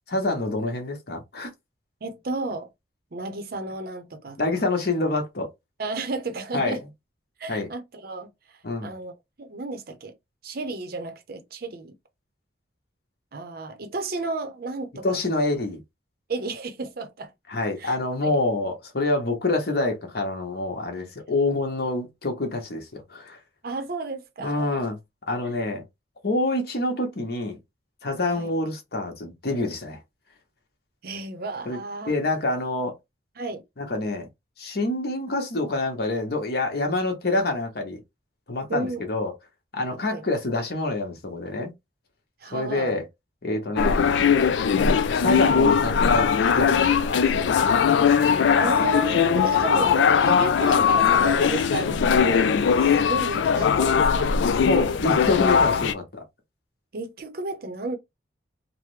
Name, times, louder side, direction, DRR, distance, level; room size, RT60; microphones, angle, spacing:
voice 1, 0.1-1.5 4.4-5.5 6.5-6.8 7.5-7.7 8.6-8.9 15.0-15.8 17.5-23.4 24.4-25.0 25.3-25.8 26.2-27.6 28.0-30.0 31.7-31.8 32.1-32.9 33.8-34.3 34.6-38.0 38.5-39.3 39.7-41.7 42.5-43.0 43.4-44.0 44.8-46.3 46.5-47.7 49.7-49.9 54.6-56.2, left 2 dB, 60° left, 1.0 m, -27 dB
voice 2, 2.0-2.7 3.1-4.6 5.8-6.8 7.4-8.3 8.8-9.1 9.4-10.1 10.4-11.9 13.3-15.2 16.3-17.3 17.8-18.0 18.2-18.4 23.6-24.8 25.4-25.5 28.3-28.5 31.0-32.1 33.4-33.6 38.7-39.0 40.0-40.2 42.4-43.0 48.6-54.4 56.9-58.0, right 3 dB, 55° right, 0.6 m, -32 dB
sound 1, 43.8-55.9, left 6 dB, 85° left, 0.4 m, -20 dB
3.2 x 2.1 x 3.1 m
head